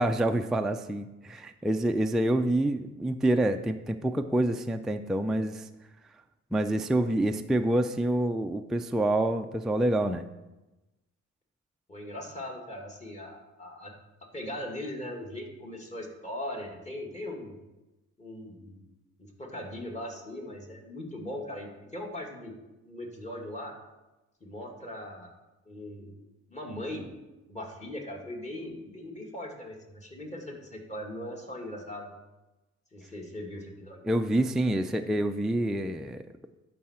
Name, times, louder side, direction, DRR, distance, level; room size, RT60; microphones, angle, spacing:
voice 1, 0.0-5.7 6.5-10.2 34.0-36.2, right 1 dB, ahead, 5 dB, 0.3 m, -27 dB
voice 2, 11.9-13.9 14.3-17.6 18.2-18.8 19.2-22.5 22.9-23.8 24.4-25.3 25.7-26.1 26.5-27.1 27.5-32.1 32.9-34.0, left 1 dB, 25° left, 0 dB, 2.1 m, -39 dB
11.5 x 4.8 x 4.3 m, 1.0 s
cardioid pair, 90°, 30 cm